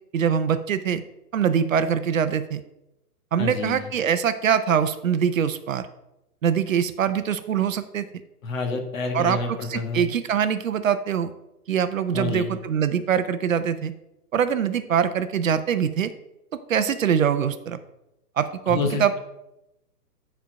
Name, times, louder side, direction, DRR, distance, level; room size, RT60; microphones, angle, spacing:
voice 1, 0.1-1.0 1.3-2.6 3.3-5.9 6.4-8.1 9.1-11.3 11.7-13.9 14.3-16.1 16.5-17.8 18.4-19.2, right 8 dB, 55° right, 11 dB, 0.6 m, -23 dB
voice 2, 3.4-3.9 8.4-10.1 12.1-12.6 18.7-19.2, left 3 dB, 55° left, 3 dB, 1.8 m, -28 dB
9.5 x 4.5 x 5.2 m, 0.90 s
hypercardioid pair, 160°, 49 cm